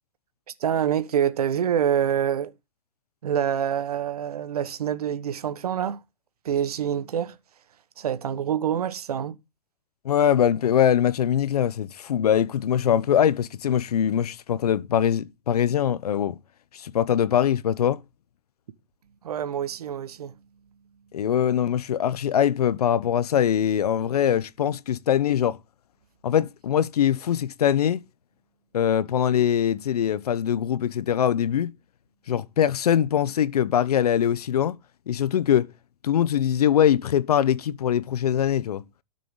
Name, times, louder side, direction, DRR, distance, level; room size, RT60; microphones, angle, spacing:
voice 1, 0.5-2.5 3.2-6.0 6.4-9.4 19.2-20.4, right 9 dB, 80° right, 1.3 m, -26 dB
voice 2, 10.0-16.4 16.7-18.0 21.1-25.6 26.2-28.0 28.7-31.7 32.3-34.8 35.1-35.7 36.0-38.8, left 9 dB, 80° left, 0.9 m, -22 dB
18.0 x 6.8 x 3.8 m
hypercardioid pair, 145°, 19 cm